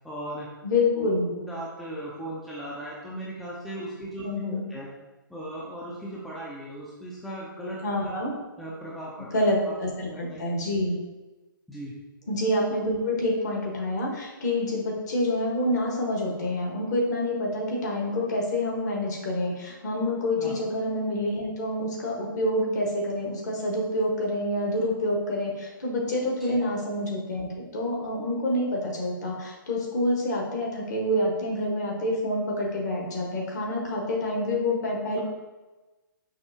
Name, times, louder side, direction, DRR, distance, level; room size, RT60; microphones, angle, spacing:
voice 1, 0.0-0.5 0.9-1.1 1.4-4.9 5.3-8.1 8.6-9.5 10.0-10.4 11.7-12.0 20.4-20.6 26.4-26.6, right 1 dB, ahead, -7 dB, 0.4 m, -38 dB
voice 2, 0.6-1.3 4.2-4.7 7.8-8.3 9.3-11.0 12.3-35.2, left 1 dB, 50° left, -1 dB, 1.2 m, -27 dB
5.5 x 2.1 x 2.7 m, 1.1 s
figure-of-eight pair, 130°, 12 cm